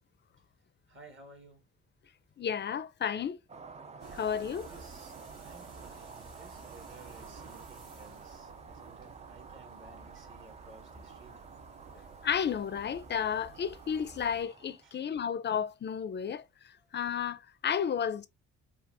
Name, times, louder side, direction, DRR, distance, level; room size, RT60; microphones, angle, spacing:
voice 1, 0.9-1.6 4.4-11.4 14.8-15.0 16.7-16.9, right 2 dB, 40° right, 1.4 m, -56 dB
voice 2, 2.4-3.4 4.1-4.7 12.2-18.3, left 8 dB, 35° left, 0.5 m, -32 dB
sound 1, 3.5-15.0, right 5 dB, 25° right, 0.4 m, -51 dB
sound 2, 4.0-14.4, right 4 dB, 65° right, 2.0 m, -53 dB
5.4 x 2.4 x 2.5 m
cardioid pair, 90°, 30 cm